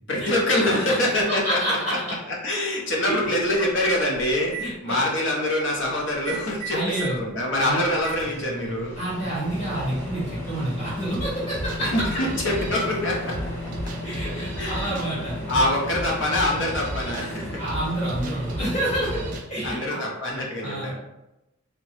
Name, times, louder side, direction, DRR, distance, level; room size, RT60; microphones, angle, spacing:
voice 1, 0.1-2.0 2.3-8.9 11.8-13.6 14.6-15.2 15.5-17.6 19.6-20.9, left 1 dB, 60° left, -2 dB, 0.7 m, -25 dB
voice 2, 1.3-2.2 3.0-3.2 4.6-5.0 6.7-7.2 7.6-7.8 8.9-11.9 14.0-15.4 17.6-19.2 19.5-20.0 20.6-20.9, right 1 dB, 30° left, -8 dB, 1.0 m, -28 dB
Microwave oven, 3.7-4.7 6.1-7.2 7.6-19.4, equal, 10° left, 0.5 m, -35 dB
sound 1, 11.1-19.7, right 1 dB, 40° right, 0.3 m, -35 dB
2.8 x 2.1 x 3.1 m, 0.92 s
head